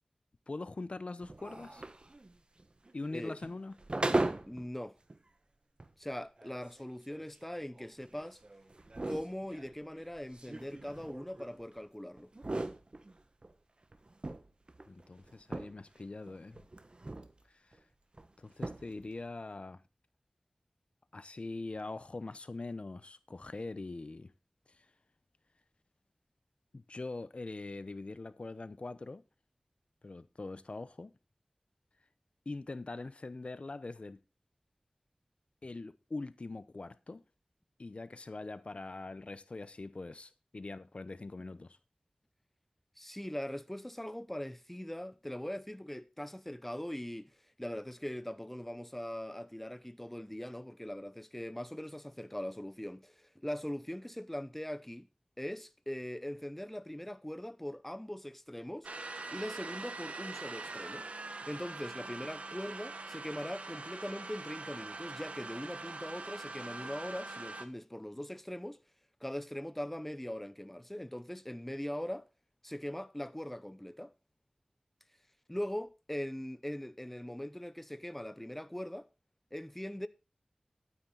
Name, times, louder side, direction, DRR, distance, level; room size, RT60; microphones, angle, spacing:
voice 1, 0.5-1.8 2.9-3.7 14.9-16.6 17.5-17.8 18.4-19.8 21.1-24.3 24.7-24.9 26.7-29.2 30.0-31.1 32.5-34.2 35.6-37.2 37.8-41.8, left 3 dB, 60° left, 0.7 m, -43 dB
sound 1, 1.2-4.7 5.1-5.2 5.8-5.9 6.4-11.8 12.2-13.5 13.9-16.0 16.3-17.4 17.7-17.8 18.1-18.3 18.5-19.1, right 2 dB, 45° right, 1.3 m, -39 dB
voice 2, 4.5-5.0 6.0-8.4 9.1-12.3 43.0-47.3 47.6-55.1 55.4-58.9 59.3-61.1 61.4-68.8 69.2-72.3 72.6-74.1 75.5-79.1 79.5-80.1, left 1 dB, 10° left, 0.8 m, -41 dB
sound 2, 58.8-67.7, right 3 dB, 75° right, 1.4 m, -43 dB
11.5 x 9.6 x 3.9 m
wide cardioid pair, 60°, 2 cm